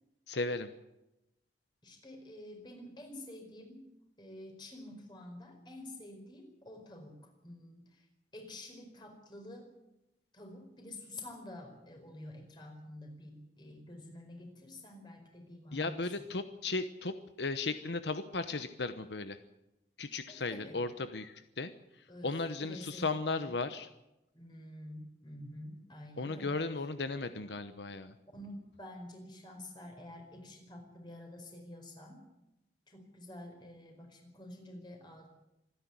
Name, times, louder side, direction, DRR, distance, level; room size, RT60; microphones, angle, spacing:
voice 1, 0.3-0.7 15.7-19.4 20.0-23.9 26.2-28.1, left 3 dB, 80° left, 10 dB, 1.0 m, -36 dB
voice 2, 1.8-3.8 4.2-8.0 8.3-9.7 10.3-16.3 20.3-20.8 22.1-22.3 22.6-23.1 23.3-23.5 24.3-26.6 28.3-32.2 32.9-35.3, left 1 dB, 25° left, 3 dB, 4.8 m, -49 dB
26.0 x 10.5 x 9.7 m, 0.92 s
head